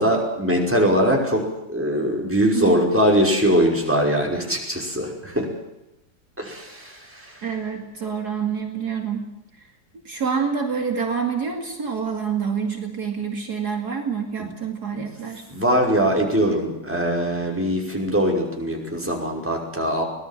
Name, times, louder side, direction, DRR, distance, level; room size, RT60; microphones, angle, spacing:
voice 1, 0.0-5.5 6.4-7.5 14.4-14.5 14.9-15.0 15.5-20.0, equal, 5° right, 0 dB, 5.6 m, -22 dB
voice 2, 7.4-9.3 10.0-15.4, right 6 dB, 60° right, 3 dB, 3.0 m, -27 dB
24.5 x 19.0 x 7.5 m, 0.91 s
omnidirectional pair, 1.9 m